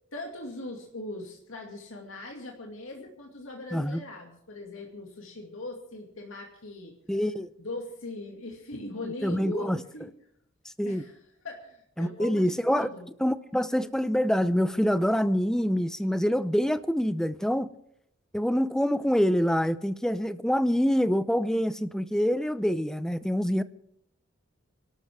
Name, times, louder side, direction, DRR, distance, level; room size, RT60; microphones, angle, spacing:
voice 1, 0.1-7.0 7.6-10.1 10.8-11.2 11.4-13.1 16.0-16.1, left 2 dB, 85° left, 1 dB, 2.4 m, -40 dB
voice 2, 3.7-4.0 7.1-7.5 9.2-9.8 10.8-11.0 12.0-12.9 13.2-17.7 18.3-23.6, equal, 5° left, 13 dB, 0.5 m, -26 dB
26.0 x 12.5 x 3.6 m, 0.74 s
head